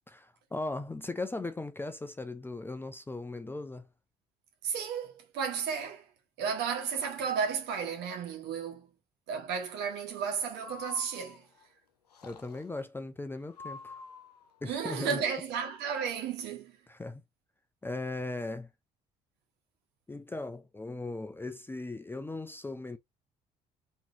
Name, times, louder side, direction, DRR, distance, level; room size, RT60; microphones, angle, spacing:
voice 1, 0.1-3.9 12.2-14.0 14.6-15.2 16.9-17.2 17.8-18.7 20.1-23.0, left 2 dB, 10° left, 0.5 m, -38 dB
voice 2, 4.6-6.0 6.4-8.9 9.3-11.4 14.6-16.7, right 6 dB, 60° right, 1.3 m, -33 dB
Breathing, 10.5-11.7 12.1-12.8 13.5-14.6, left 4 dB, 85° left, 0.5 m, -47 dB
3.7 x 2.9 x 2.8 m
figure-of-eight pair, 50°, 20 cm